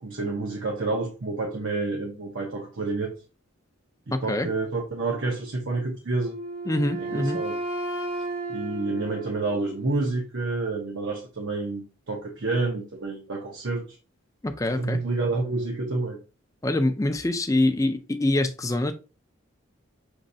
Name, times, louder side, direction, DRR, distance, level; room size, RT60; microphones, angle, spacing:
voice 1, 0.0-3.1 4.1-6.4 7.0-7.6 8.1-13.8 14.8-16.2, right 3 dB, 65° right, 0.8 m, -29 dB
voice 2, 4.1-4.5 6.7-7.4 14.4-15.0 16.6-18.9, left 1 dB, 15° left, 0.4 m, -25 dB
Wind instrument woodwind instrument, 6.2-10.1, right 2 dB, 85° right, 2.0 m, -33 dB
6.3 x 3.2 x 2.7 m
head